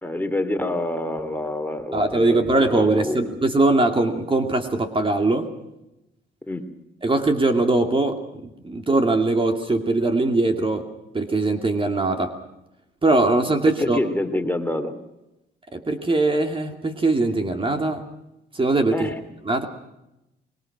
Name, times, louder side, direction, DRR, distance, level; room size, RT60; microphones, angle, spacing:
voice 1, 0.0-3.2 6.5-6.7 13.8-14.9 18.9-19.2, left 1 dB, 10° left, 7 dB, 3.0 m, -27 dB
voice 2, 1.9-5.5 7.0-10.9 11.1-12.3 13.0-14.0 15.7-18.0 18.5-19.1 19.4-19.7, right 2 dB, 25° right, 6 dB, 2.5 m, -21 dB
24.0 x 22.5 x 6.1 m, 0.90 s
cardioid pair, 90°, 20 cm